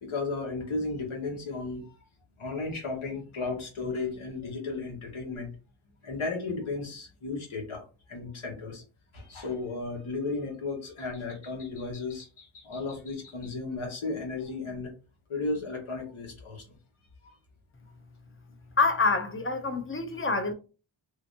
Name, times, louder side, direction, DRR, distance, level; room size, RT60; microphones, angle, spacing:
voice 1, 0.0-2.0 2.4-5.5 6.0-7.8 8.1-8.8 9.1-14.9 15.3-16.6, left 3 dB, 80° left, 1.4 m, -34 dB
voice 2, 18.8-20.5, left 3 dB, 25° left, 0.5 m, -26 dB
3.3 x 2.8 x 2.7 m
wide cardioid pair, 105°, 48 cm